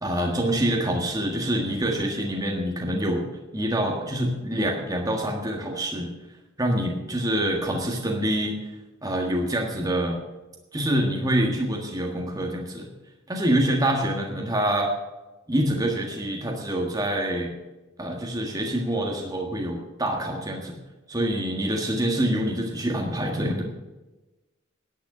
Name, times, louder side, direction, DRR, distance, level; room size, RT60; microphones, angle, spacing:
voice 1, 0.0-3.2 3.5-6.1 6.6-8.6 9.0-10.2 10.7-12.9 13.3-14.9 15.5-17.5 18.0-20.8 21.1-23.6, right 1 dB, 20° right, 1 dB, 1.6 m, -26 dB
11.0 x 9.3 x 8.9 m, 1.1 s
head